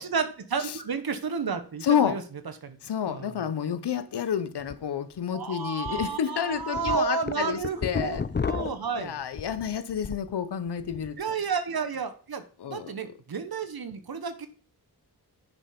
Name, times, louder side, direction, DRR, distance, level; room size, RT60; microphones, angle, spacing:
voice 1, 0.0-2.2 2.6-2.8 3.1-3.3 5.3-9.2 11.2-14.5, right 5 dB, 65° right, 1.5 m, -31 dB
voice 2, 1.8-2.2 2.8-8.2 8.9-11.2 12.6-13.1, left 8 dB, 85° left, 1.0 m, -29 dB
sound 1, 4.7-4.8 5.2-5.3 5.8-6.1 6.5-10.3 10.7-11.1, left 5 dB, 25° left, 0.6 m, -32 dB
9.5 x 5.6 x 5.3 m
cardioid pair, 55°, 40 cm